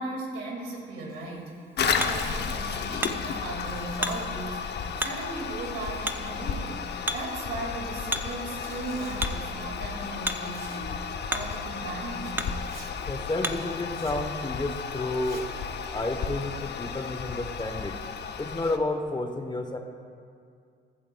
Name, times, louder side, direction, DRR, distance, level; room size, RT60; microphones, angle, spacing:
voice 1, 0.0-6.8 7.1-10.9 11.3-12.5, right 2 dB, 90° right, -1 dB, 2.1 m, -37 dB
Hammer, 1.1-13.8, right 1 dB, 10° right, 0.5 m, -37 dB
Zipper (clothing), 1.1-1.5 1.7-1.8 2.2-2.3 2.9-3.0 3.2-4.5 5.0-5.3 5.5-7.0 8.3-9.3 10.5-11.0 11.3-11.4 11.9-12.0 12.6-13.0 13.9-14.2 15.1-15.6 16.2-16.8, right 4 dB, 50° right, 1.5 m, -53 dB
Toilet flush, 1.8-18.8, left 6 dB, 60° left, 0.7 m, -33 dB
voice 2, 13.1-15.5 15.9-18.0 18.4-19.8, left 2 dB, 20° left, 5 dB, 0.9 m, -31 dB
15.0 x 12.5 x 2.3 m, 2.3 s
cardioid pair, 90°, 20 cm